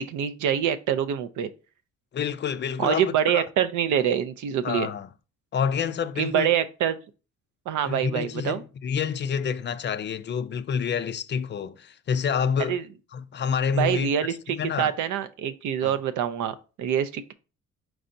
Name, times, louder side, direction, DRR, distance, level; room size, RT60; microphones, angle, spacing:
voice 1, 0.0-1.5 2.8-4.9 6.2-7.0 7.7-8.6 12.6-12.8 13.7-17.3, right 9 dB, 80° right, 0.6 m, -25 dB
voice 2, 2.1-3.4 4.6-5.1 5.5-6.5 7.8-12.8 13.1-14.1 14.5-14.9 15.8-15.9, left 7 dB, 40° left, 0.4 m, -28 dB
4.7 x 4.1 x 2.6 m
cardioid pair, 90°, 30 cm